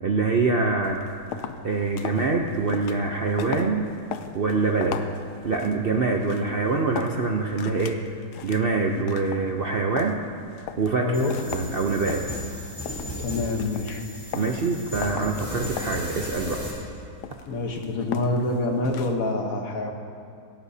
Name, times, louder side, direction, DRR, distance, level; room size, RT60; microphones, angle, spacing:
voice 1, 0.0-1.0 1.6-3.9 4.3-5.0 5.4-8.0 8.4-10.2 10.8-11.2 11.5-12.2 14.3-16.6, right 3 dB, 50° right, 1 dB, 0.7 m, -24 dB
sound 1, 0.8-19.3, left 8 dB, 85° left, 1.2 m, -39 dB
voice 2, 11.0-11.4 13.2-14.1 17.5-19.9, left 2 dB, 60° left, 3 dB, 1.5 m, -26 dB
sound 2, 11.1-16.7, left 1 dB, 20° left, 4.3 m, -35 dB
18.0 x 17.5 x 2.8 m, 2.4 s
omnidirectional pair, 1.7 m